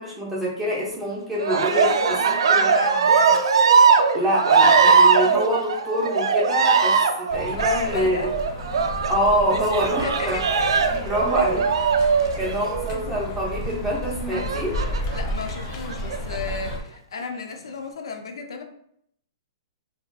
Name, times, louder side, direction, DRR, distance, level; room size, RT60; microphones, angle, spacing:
voice 1, 0.0-2.2 2.5-2.7 4.1-8.3 9.1-10.4 11.0-11.6 12.4-14.8, equal, 5° right, -5 dB, 0.7 m, -25 dB
Cheering, 1.4-13.1 14.3-15.2 15.9-16.6, right 5 dB, 85° right, 0.3 m, -20 dB
voice 2, 1.7-3.4 7.6-8.3 10.0-11.1 12.3-12.6 15.1-18.6, left 4 dB, 80° left, 4 dB, 0.5 m, -34 dB
sound 1, 7.3-16.8, left 1 dB, 30° left, 0.4 m, -32 dB
3.3 x 2.5 x 2.3 m, 0.69 s
hypercardioid pair, 165°, 3 cm